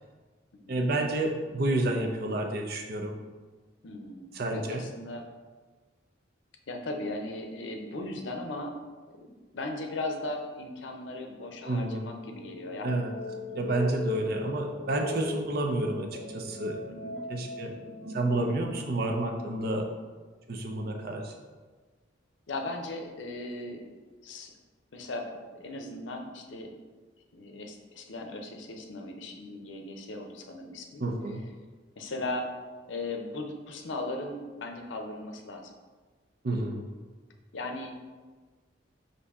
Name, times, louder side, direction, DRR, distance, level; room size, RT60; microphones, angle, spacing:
voice 1, 0.7-3.2 4.3-4.8 11.6-12.1 12.8-13.1 13.5-16.8 17.3-17.7 18.1-19.9 20.5-21.3 31.0-31.4 36.4-36.9, right 2 dB, 55° right, 3 dB, 0.6 m, -30 dB
voice 2, 3.8-5.2 6.7-8.8 9.1-9.3 9.5-12.8 16.9-17.2 22.5-23.8 24.2-24.5 24.9-26.7 27.3-31.0 32.0-32.5 32.9-35.7 37.5-37.9, left 2 dB, 75° left, 3 dB, 0.6 m, -37 dB
sound 1, 11.9-18.6, left 1 dB, 90° right, 1.0 m, -40 dB
5.3 x 2.7 x 3.5 m, 1.4 s
head